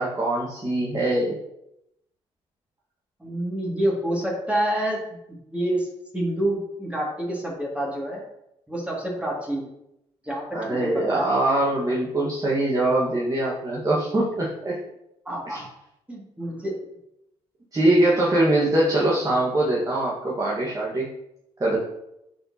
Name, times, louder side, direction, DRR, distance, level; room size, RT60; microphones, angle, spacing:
voice 1, 0.0-1.4 10.5-14.8 15.5-15.6 17.7-21.1 21.6-21.8, right 1 dB, 25° right, -5 dB, 1.5 m, -23 dB
voice 2, 3.2-5.0 5.5-5.9 6.1-8.2 8.7-9.7 10.2-11.3 15.3-15.6 16.1-16.7, right 1 dB, 10° right, -4 dB, 2.2 m, -27 dB
8.6 x 4.4 x 2.8 m, 0.82 s
supercardioid pair, 60°, 13 cm